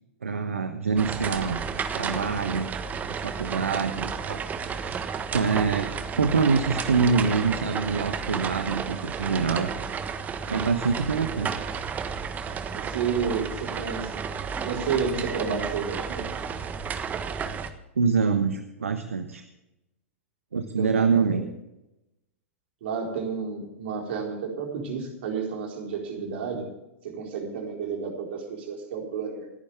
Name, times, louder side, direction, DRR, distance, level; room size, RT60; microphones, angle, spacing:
voice 1, 0.2-1.6 1.9-2.8 3.1-5.0 5.3-5.9 6.2-9.7 10.5-11.6 18.0-19.4 20.5-21.4, right 5 dB, 75° right, 8 dB, 1.2 m, -25 dB
sound 1, 1.0-17.7, right 6 dB, 20° right, 1.4 m, -32 dB
voice 2, 11.1-11.6 12.7-14.2 14.6-16.3 20.6-21.4 22.8-26.7 27.0-29.5, right 6 dB, 55° right, 1 dB, 4.4 m, -31 dB
28.5 x 10.0 x 3.5 m, 0.91 s
figure-of-eight pair, 100°, 7 cm